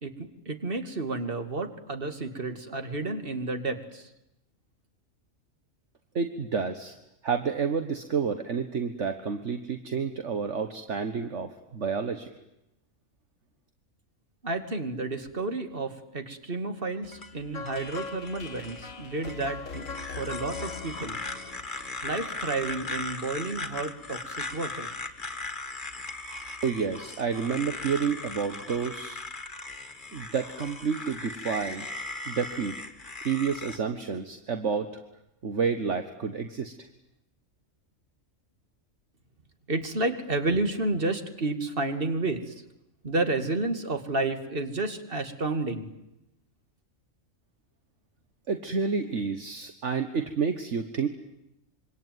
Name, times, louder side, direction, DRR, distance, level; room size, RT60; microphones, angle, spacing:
voice 1, 0.5-4.1 14.4-19.9 20.2-21.2 22.0-24.9 39.7-42.5 43.0-45.9, right 2 dB, 45° right, 7 dB, 2.5 m, -31 dB
voice 2, 6.1-6.9 7.2-12.3 26.6-29.2 30.1-31.8 32.3-32.8 33.2-34.9 35.4-36.7 48.5-51.1, right 6 dB, 60° right, 7 dB, 1.7 m, -29 dB
sound 1, 17.0-33.8, left 2 dB, 35° left, 2.1 m, -39 dB
sound 2, 17.5-22.5, left 5 dB, 75° left, 1.7 m, -41 dB
26.0 x 24.5 x 9.4 m, 0.87 s
omnidirectional pair, 1.4 m